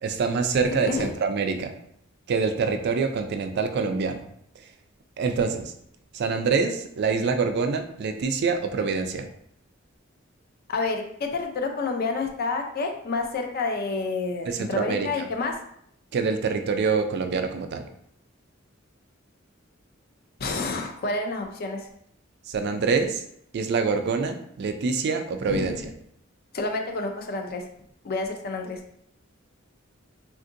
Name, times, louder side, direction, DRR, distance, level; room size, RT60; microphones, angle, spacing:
voice 1, 0.0-1.7 2.3-4.3 5.2-5.7 6.1-9.3 14.5-15.3 16.1-17.9 22.5-23.2 23.5-25.9, right 5 dB, 55° right, 7 dB, 0.3 m, -25 dB
voice 2, 10.7-15.5 20.4-21.9 25.5-25.9 26.5-27.6 28.0-28.8, left 3 dB, 50° left, 4 dB, 0.5 m, -29 dB
3.6 x 2.6 x 2.5 m, 0.69 s
head